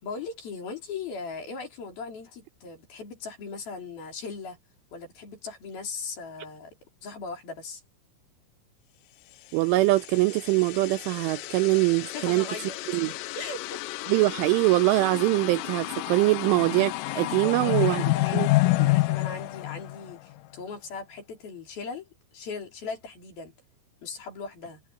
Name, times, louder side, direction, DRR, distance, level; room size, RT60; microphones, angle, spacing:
voice 1, 0.0-4.6 4.9-6.8 7.0-7.8 12.1-12.8 13.3-13.8 17.4-18.5 18.9-23.5 24.0-24.8, left 4 dB, 50° left, 5.8 m, -38 dB
voice 2, 9.5-12.5 12.9-13.1 14.1-18.0 18.3-18.5 18.8-18.9, right 20 dB, 85° right, 2.9 m, -23 dB
sound 1, 9.7-20.4, left 20 dB, 85° left, 3.4 m, -29 dB
omnidirectional pair, 6.0 m